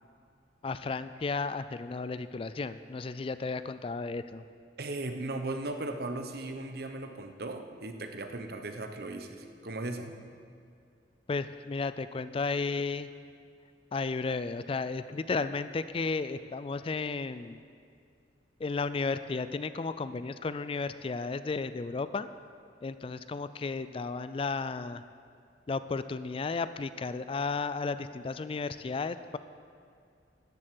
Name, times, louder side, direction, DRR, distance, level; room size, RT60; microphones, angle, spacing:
voice 1, 0.6-4.4 11.3-13.1 13.9-17.6 18.6-22.3 22.8-25.0 25.7-29.4, left 4 dB, 30° left, 13 dB, 0.4 m, -33 dB
voice 2, 4.8-10.1, right 2 dB, 60° right, 6 dB, 1.0 m, -37 dB
13.0 x 7.7 x 7.7 m, 2.4 s
head